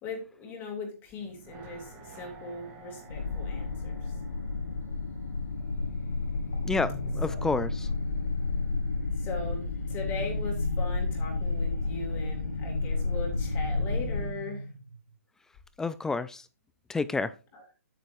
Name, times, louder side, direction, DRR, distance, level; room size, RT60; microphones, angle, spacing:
voice 1, 0.0-4.1 7.3-7.4 9.2-14.7 17.5-17.6, left 3 dB, 25° left, 2.6 m, -39 dB
sound 1, 1.2-6.3 6.6-6.7, right 2 dB, 25° right, 2.7 m, -51 dB
sound 2, 3.1-14.3, left 3 dB, 80° left, 2.8 m, -31 dB
sound 3, 5.7-7.8 9.4-11.5 13.1-15.1, right 2 dB, 75° right, 1.4 m, -43 dB
voice 2, 6.6-7.9 15.8-16.5 16.9-17.3, left 3 dB, 5° left, 0.3 m, -30 dB
9.1 x 8.7 x 2.6 m
hypercardioid pair, 135°, 9 cm